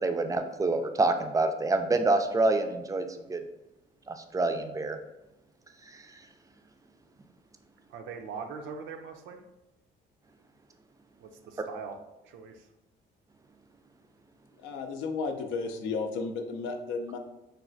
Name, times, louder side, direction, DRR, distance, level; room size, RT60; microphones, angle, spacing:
voice 1, 0.0-3.4 4.1-5.0, right 2 dB, 15° right, 7 dB, 0.3 m, -27 dB
voice 2, 7.9-9.4 11.2-12.0 12.2-12.6, right 5 dB, 75° right, 5 dB, 0.5 m, -41 dB
voice 3, 14.6-17.2, left 4 dB, 80° left, 5 dB, 0.4 m, -33 dB
3.2 x 2.2 x 2.5 m, 0.96 s
supercardioid pair, 60°, 20 cm